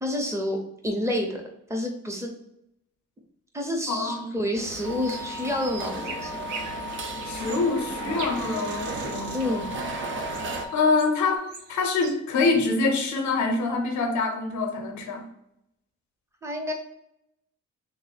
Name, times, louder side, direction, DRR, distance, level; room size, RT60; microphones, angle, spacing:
voice 1, 0.0-0.6 0.8-2.3 3.5-6.4 9.3-9.7 16.4-16.7, left 1 dB, 10° right, 1 dB, 0.7 m, -29 dB
voice 2, 3.9-4.3 7.2-9.7 10.7-15.2, left 3 dB, 70° left, 4 dB, 0.7 m, -25 dB
sound 1, 4.6-10.7, right 3 dB, 40° right, 0.5 m, -35 dB
sound 2, 4.8-11.4, left 3 dB, 15° left, 0.4 m, -38 dB
sound 3, 5.0-12.1, right 5 dB, 90° right, 0.6 m, -42 dB
3.2 x 2.0 x 4.1 m, 0.79 s
cardioid pair, 90°, 30 cm